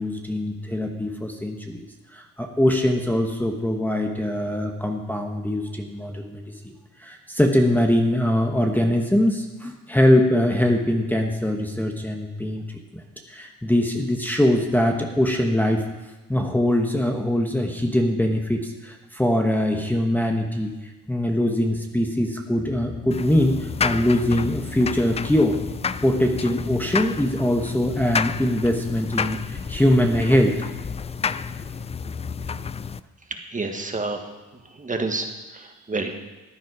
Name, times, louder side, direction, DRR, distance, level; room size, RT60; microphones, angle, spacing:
voice 1, 0.0-1.8 2.1-6.5 7.0-12.7 12.9-13.0 13.3-15.8 16.3-20.7 21.1-25.6 26.0-30.6, left 1 dB, 5° left, 1 dB, 1.2 m, -22 dB
sound 1, 22.5-32.6, left 4 dB, 40° left, 5.1 m, -40 dB
sound 2, 23.1-33.0, left 6 dB, 20° left, 0.3 m, -31 dB
voice 2, 33.5-34.2 34.8-36.2, right 3 dB, 25° right, 4 dB, 1.5 m, -29 dB
14.5 x 9.2 x 4.8 m, 1.1 s
cardioid pair, 90°, 30 cm